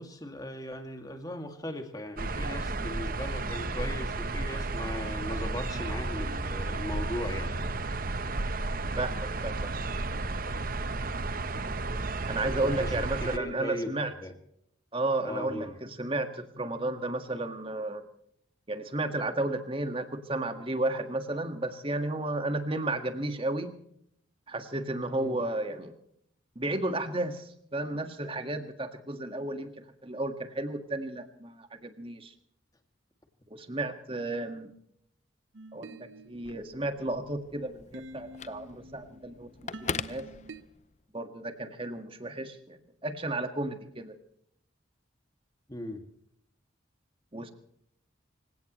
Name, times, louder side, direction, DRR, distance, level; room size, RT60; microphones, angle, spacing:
voice 1, 0.0-7.5 12.6-12.9 13.3-13.9 14.2-14.3 15.2-15.7 25.1-25.4 45.7-46.0, left 1 dB, 20° left, 5 dB, 2.2 m, -38 dB
sound 1, 2.2-13.4, right 2 dB, 45° right, 0.9 m, -33 dB
voice 2, 9.0-9.7 12.3-14.1 14.9-18.0 18.7-23.7 24.5-25.9 26.6-29.7 30.0-32.3 33.5-34.7 35.7-39.5 39.8-40.2 41.1-44.2 47.3-47.5, right 2 dB, 25° right, 7 dB, 1.7 m, -33 dB
sound 2, 35.5-40.6, right 2 dB, 75° right, 0.9 m, -49 dB
Telephone, 36.3-41.1, left 5 dB, 35° left, 0.6 m, -41 dB
26.0 x 17.0 x 3.1 m, 0.71 s
head